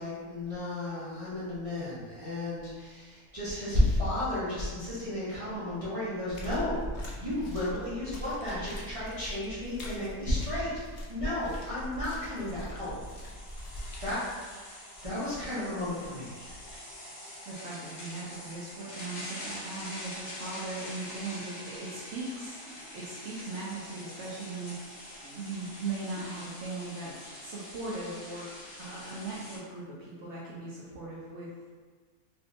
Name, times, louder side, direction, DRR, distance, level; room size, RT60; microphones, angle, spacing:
voice 1, 0.0-6.8 7.2-10.7 11.1-13.2 14.0-14.2 14.5-16.6, left 1 dB, 30° right, -12 dB, 0.6 m, -33 dB
sound 1, 6.3-14.1, equal, 65° left, 0.5 m, -41 dB
sound 2, 11.1-11.2 11.8-29.6, left 1 dB, 85° left, 1.6 m, -45 dB
voice 2, 17.5-22.6 22.9-24.7 25.2-31.5, right 3 dB, 65° right, -6 dB, 0.7 m, -39 dB
3.4 x 2.6 x 2.5 m, 1.5 s
omnidirectional pair, 1.6 m